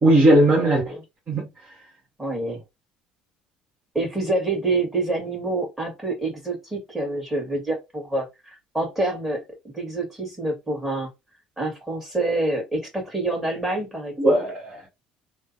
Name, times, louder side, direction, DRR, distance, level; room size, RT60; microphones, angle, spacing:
voice 1, 0.0-1.0 1.3-1.5 14.2-14.9, right 1 dB, 40° right, 1.4 m, -18 dB
voice 2, 2.2-2.6 3.9-11.1 11.6-14.4, right 2 dB, 10° right, 1.8 m, -27 dB
3.2 x 2.1 x 2.7 m
hypercardioid pair, 65°, 4 cm